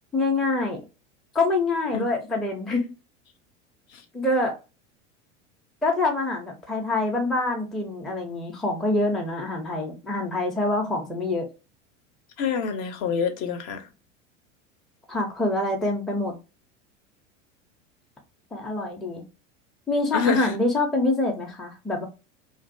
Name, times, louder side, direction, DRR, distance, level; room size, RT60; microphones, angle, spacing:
voice 1, 0.1-0.8 1.3-2.8 4.1-4.5 5.8-11.5 15.1-16.3 18.5-19.2 19.9-22.0, left 2 dB, ahead, 0.4 m, -25 dB
voice 2, 12.4-13.9 20.1-20.5, left 6 dB, 50° left, 0.6 m, -26 dB
2.5 x 2.2 x 2.4 m
hypercardioid pair, 90°, 37 cm